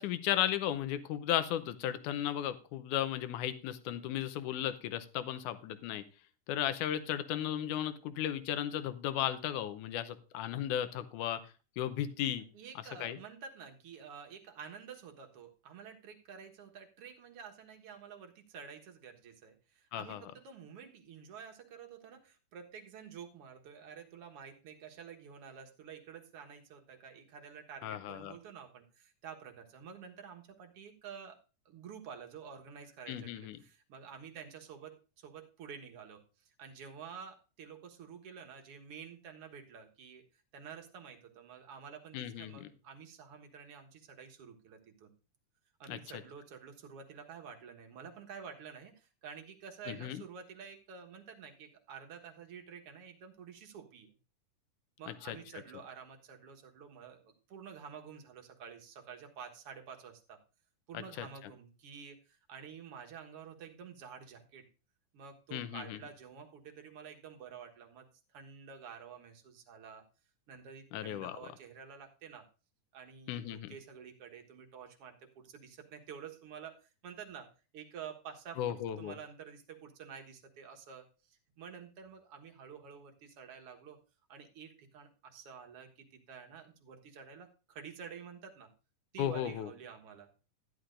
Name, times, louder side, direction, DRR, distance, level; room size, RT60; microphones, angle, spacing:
voice 1, 0.0-6.0 6.5-11.4 11.8-12.5 13.0-13.2 19.9-20.2 27.8-28.3 33.1-33.6 42.1-42.7 45.9-46.0 49.9-50.2 55.3-55.4 61.2-61.3 65.5-66.0 70.9-71.4 73.3-73.7 78.6-79.1 89.2-89.7, left 11 dB, 75° left, 11 dB, 2.2 m, -35 dB
voice 2, 12.5-31.4 31.7-40.2 40.5-45.1 45.8-54.1 55.0-60.4 60.9-64.7 65.1-68.1 68.3-70.0 70.5-72.4 72.9-77.5 77.7-78.6 79.0-84.0 84.3-88.7 89.1-90.3, right 7 dB, 55° right, 3 dB, 2.0 m, -50 dB
14.0 x 10.5 x 2.6 m, 0.33 s
omnidirectional pair, 3.7 m